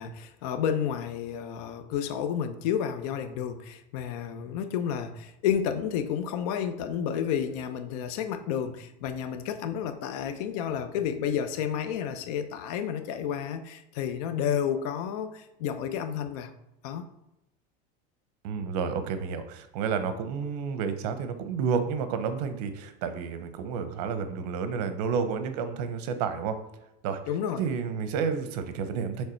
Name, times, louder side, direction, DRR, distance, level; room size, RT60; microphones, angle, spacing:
voice 1, 0.0-16.5 16.8-17.1 27.3-27.6, left 8 dB, 65° left, 9 dB, 0.7 m, -31 dB
voice 2, 18.4-26.6 27.0-27.2 27.6-29.2, right 6 dB, 75° right, 9 dB, 0.8 m, -30 dB
6.5 x 3.4 x 4.4 m, 0.86 s
cardioid pair, 165°, 21 cm